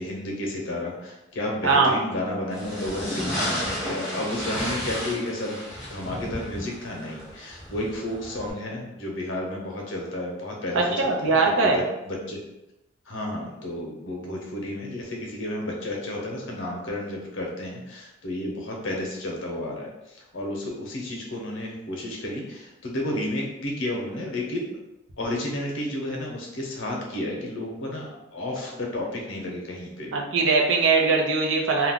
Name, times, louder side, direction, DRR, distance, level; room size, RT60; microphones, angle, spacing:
voice 1, 0.0-5.6 5.9-11.4 11.6-12.4 13.1-24.8 25.2-30.2, left 1 dB, 80° left, -1 dB, 0.7 m, -32 dB
voice 2, 1.6-1.9 10.7-11.8 30.1-31.9, right 4 dB, 80° right, 0 dB, 0.6 m, -21 dB
sound 1, 2.5-8.5, equal, 5° right, 0.9 m, -33 dB
2.4 x 2.2 x 3.6 m, 0.93 s
head